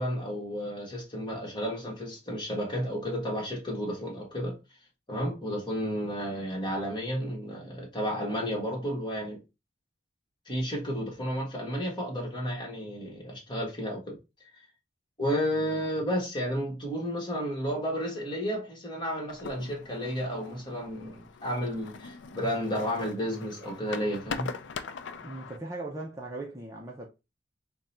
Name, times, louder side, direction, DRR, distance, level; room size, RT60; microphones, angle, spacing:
voice 1, 0.0-4.6 5.1-9.4 10.5-14.2 15.2-24.5, equal, 25° left, 1.3 m, -32 dB
sound 1, 19.3-25.6, left 5 dB, 75° left, 0.4 m, -42 dB
voice 2, 25.1-27.1, right 2 dB, 15° right, 0.6 m, -39 dB
3.7 x 2.3 x 4.2 m
head